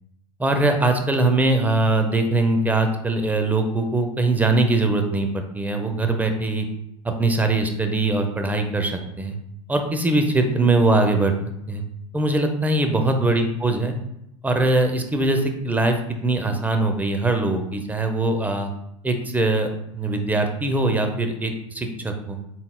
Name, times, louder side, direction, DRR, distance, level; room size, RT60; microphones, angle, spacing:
voice 1, 0.4-6.7 7.0-9.4 9.7-11.3 11.7-11.8 12.1-13.9 14.4-18.7 19.0-22.4, right 2 dB, 10° right, 5 dB, 0.6 m, -22 dB
3.8 x 3.7 x 2.2 m, 0.79 s
hypercardioid pair, 95°, 17 cm